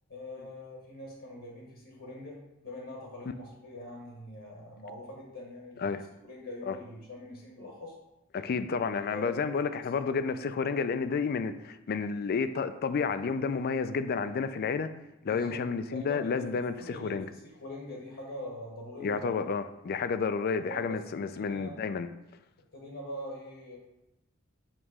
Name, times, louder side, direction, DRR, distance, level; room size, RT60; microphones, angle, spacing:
voice 1, 0.1-2.4 2.6-5.9 6.2-7.9 9.1-9.5 15.2-15.6 15.9-19.5 20.6-20.8 21.3-21.7 22.7-23.8, left 1 dB, 65° left, -2 dB, 1.3 m, -43 dB
voice 2, 8.3-14.9 15.2-17.3 19.0-22.1, left 5 dB, 50° left, 11 dB, 0.4 m, -31 dB
7.4 x 3.0 x 4.8 m, 0.92 s
head